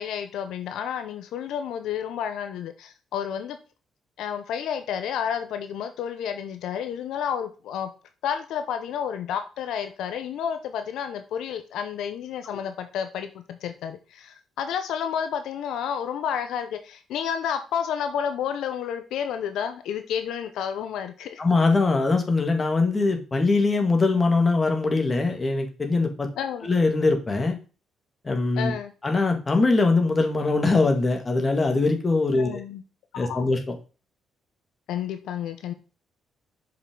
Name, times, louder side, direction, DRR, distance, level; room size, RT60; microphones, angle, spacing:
voice 1, 0.0-3.6 4.2-7.9 8.2-21.4 26.4-26.7 28.6-28.9 32.3-32.8 33.1-33.4 34.9-35.7, left 8 dB, 80° left, 8 dB, 0.7 m, -30 dB
voice 2, 21.4-26.3 26.6-27.6 28.2-28.7 29.0-32.5 33.2-33.7, left 3 dB, 25° left, 4 dB, 2.1 m, -22 dB
6.6 x 5.8 x 3.8 m, 0.34 s
cardioid pair, 90°, 0 cm